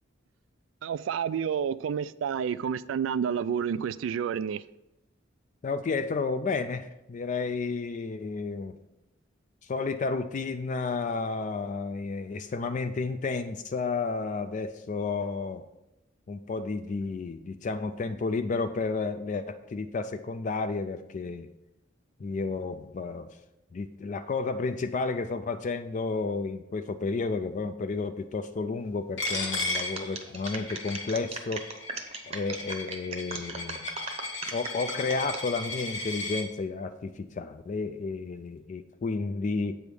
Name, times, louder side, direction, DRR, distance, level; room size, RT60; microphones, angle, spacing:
voice 1, 0.8-4.6, right 7 dB, 80° right, 0.3 m, -29 dB
voice 2, 5.6-8.7 9.6-15.6 16.3-21.5 22.2-23.3 23.7-31.7 32.3-34.0 34.5-39.8, left 4 dB, 40° left, 0.3 m, -32 dB
Coin (dropping), 29.2-36.4, left 2 dB, 65° left, 1.1 m, -36 dB
sound 1, 29.3-35.4 35.9-36.3, right 4 dB, 35° right, 0.8 m, -38 dB
8.3 x 3.5 x 6.2 m
head